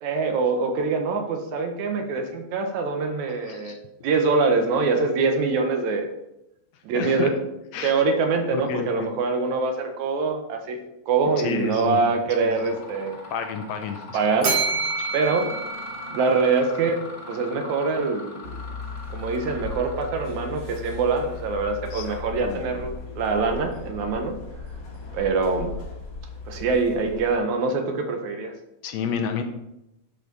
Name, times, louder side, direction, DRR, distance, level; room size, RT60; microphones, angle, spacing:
voice 1, 0.0-3.8 4.0-6.1 6.9-7.3 7.8-10.8 11.1-13.2 14.1-14.5 15.1-15.5 16.1-17.0 17.3-18.5 19.1-24.4 25.1-25.8 26.5-28.5, right 4 dB, 80° right, 5 dB, 2.3 m, -24 dB
voice 2, 3.5-3.8 6.9-7.3 7.7-7.9 8.5-9.1 11.4-12.0 12.4-12.6 13.3-14.5 15.0-15.1 21.9-22.2 22.4-22.7 28.8-29.4, left 6 dB, 75° left, 6 dB, 1.9 m, -30 dB
Mechanisms, 11.5-11.8 12.2-22.7, left 2 dB, 30° left, 1.2 m, -41 dB
Bell, 14.4-16.7, right 4 dB, 55° right, 3.0 m, -28 dB
sound 1, 18.4-27.4, left 4 dB, 45° left, 1.7 m, -37 dB
11.0 x 5.0 x 4.0 m, 0.88 s
omnidirectional pair, 3.4 m